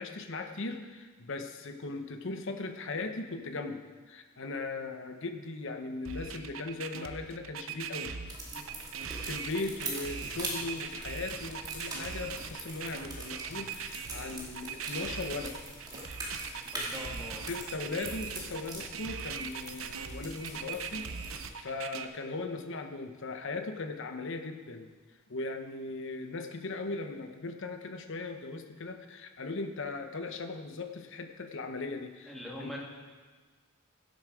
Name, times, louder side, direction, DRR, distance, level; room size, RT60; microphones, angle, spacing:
voice 1, 0.0-3.8 4.1-8.1 9.2-15.6 17.5-24.9 25.3-32.3 32.6-32.8, left 3 dB, 60° left, 6 dB, 0.9 m, -38 dB
sound 1, 6.1-22.1, right 6 dB, 65° right, 0.7 m, -40 dB
sound 2, 8.3-21.5, right 2 dB, 20° right, 2.3 m, -43 dB
voice 2, 16.6-17.4 32.3-32.8, left 1 dB, ahead, -5 dB, 2.3 m, -43 dB
16.5 x 8.1 x 4.9 m, 1.4 s
head